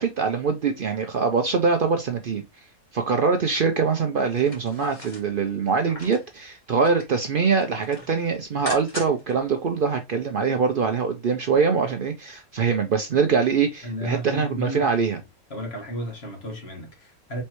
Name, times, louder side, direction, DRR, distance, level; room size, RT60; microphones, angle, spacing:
voice 1, 0.0-2.4 2.9-15.2, right 5 dB, 65° right, 0.5 m, -23 dB
sound 1, 4.2-6.3 6.7-7.2 7.5-9.3 9.7-9.8, equal, 25° left, 1.7 m, -39 dB
voice 2, 13.8-15.2 15.5-17.4, right 1 dB, 45° left, 1.6 m, -33 dB
4.4 x 3.2 x 2.9 m
omnidirectional pair, 1.5 m